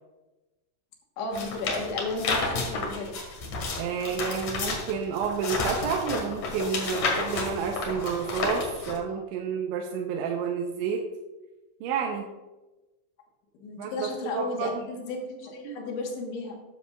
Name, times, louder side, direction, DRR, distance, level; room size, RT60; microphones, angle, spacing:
voice 1, 1.2-3.2 13.6-16.6, left 2 dB, 75° left, 0 dB, 3.6 m, -34 dB
sound 1, 1.3-9.0, left 3 dB, 55° left, 2.3 m, -31 dB
voice 2, 3.8-11.1 11.8-12.3 13.8-14.8 15.6-15.8, right 6 dB, 80° right, 1 dB, 3.0 m, -30 dB
13.0 x 9.6 x 2.5 m, 1.1 s
omnidirectional pair, 5.7 m